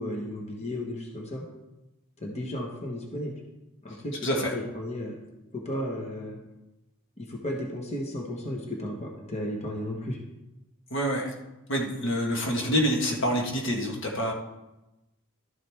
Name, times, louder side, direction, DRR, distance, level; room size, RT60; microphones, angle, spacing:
voice 1, 0.0-1.4 2.2-3.3 3.8-5.1 5.5-6.4 7.2-10.2, left 1 dB, 30° left, 0 dB, 1.3 m, -34 dB
voice 2, 4.2-4.5 10.9-11.3 11.7-14.3, equal, 60° left, 0 dB, 1.4 m, -27 dB
12.5 x 7.6 x 3.5 m, 0.99 s
head